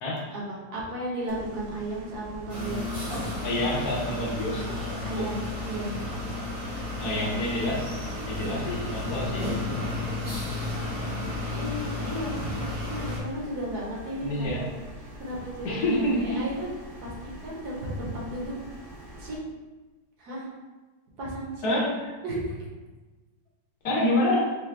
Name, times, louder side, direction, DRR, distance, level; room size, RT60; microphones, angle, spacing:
voice 1, 0.3-3.0 5.0-6.0 11.4-14.7 15.0-16.7 17.0-18.5 19.2-19.4 20.2-20.5 21.2-21.9 22.2-22.6, right 1 dB, 65° right, -4 dB, 1.4 m, -34 dB
sound 1, 1.3-19.4, equal, 90° right, 1.3 m, -45 dB
sound 2, 2.5-13.2, left 2 dB, 35° right, 0.7 m, -32 dB
voice 2, 3.4-4.7 5.2-5.3 7.0-7.9 8.3-9.5 14.2-14.7 15.6-16.5 21.6-21.9 23.8-24.6, left 1 dB, 70° left, -2 dB, 1.2 m, -27 dB
4.2 x 2.3 x 3.1 m, 1.2 s
omnidirectional pair, 1.8 m